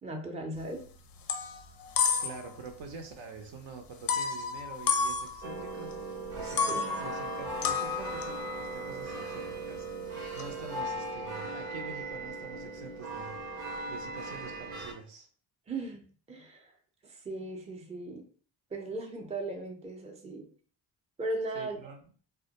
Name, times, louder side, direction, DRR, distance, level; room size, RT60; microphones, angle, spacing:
voice 1, 0.0-0.8 6.7-6.9 15.7-16.7 17.0-18.2 18.7-20.5 21.2-21.8, right 2 dB, 15° right, 2 dB, 0.5 m, -37 dB
sound 1, 0.6-0.9 1.1-2.6 2.9-3.0 4.1-5.9 6.3-10.7, left 6 dB, 45° left, 0.5 m, -32 dB
voice 2, 2.2-15.3 21.5-22.0, right 4 dB, 60° right, 5 dB, 0.7 m, -46 dB
sound 2, 5.4-14.9, right 2 dB, 85° right, 1.0 m, -38 dB
2.2 x 2.1 x 2.8 m, 0.42 s
supercardioid pair, 65°, 50 cm